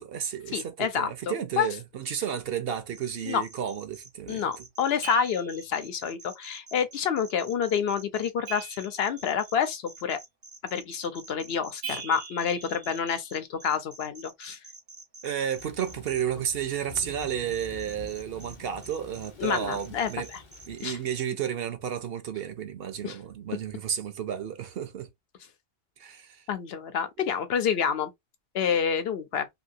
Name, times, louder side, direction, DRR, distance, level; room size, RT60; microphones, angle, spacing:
voice 1, 0.0-4.6 11.8-12.0 15.2-20.3 20.7-25.1 26.0-26.5 27.2-27.3, right 9 dB, 65° right, 0.8 m, -32 dB
voice 2, 0.5-1.7 3.2-3.4 4.3-10.2 10.6-14.6 19.4-20.4 20.8-21.0 23.0-23.2 26.5-28.1 28.5-29.5, left 7 dB, 65° left, 0.8 m, -28 dB
sound 1, 2.9-16.2 16.9-18.6 18.8-21.4, right 3 dB, 30° right, 0.6 m, -48 dB
sound 2, 5.0-5.8 8.5-9.5 11.8-13.5, right 6 dB, 90° right, 1.2 m, -42 dB
Thunder / Rain, 15.5-21.3, left 3 dB, 30° left, 0.7 m, -48 dB
2.8 x 2.7 x 2.5 m
omnidirectional pair, 1.1 m